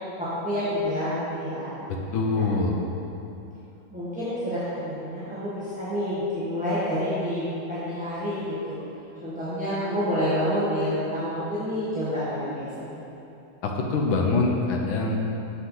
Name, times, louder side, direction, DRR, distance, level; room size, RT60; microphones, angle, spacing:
voice 1, 0.2-1.7 2.3-2.4 3.9-8.8 9.2-13.0, equal, 5° right, -13 dB, 0.9 m, -28 dB
voice 2, 1.9-2.8 13.6-15.2, left 3 dB, 75° left, 1 dB, 1.5 m, -24 dB
6.9 x 6.8 x 3.8 m, 2.8 s
omnidirectional pair, 2.2 m